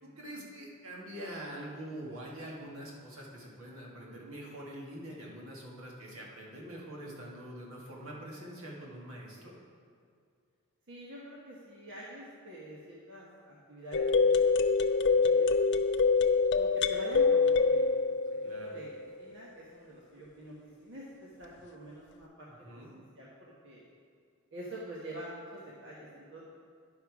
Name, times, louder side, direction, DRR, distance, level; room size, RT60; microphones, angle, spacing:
voice 1, 0.0-9.6 18.4-18.8 22.5-22.9, right 1 dB, 80° right, -3 dB, 1.9 m, -44 dB
voice 2, 10.9-14.4 14.7-15.7 16.5-18.9 19.2-22.5 22.9-23.8 24.5-26.4, equal, 60° right, -6 dB, 1.2 m, -46 dB
sound 1, 13.9-19.0, left 4 dB, 55° left, 0.5 m, -25 dB
10.5 x 5.7 x 4.7 m, 2.2 s
head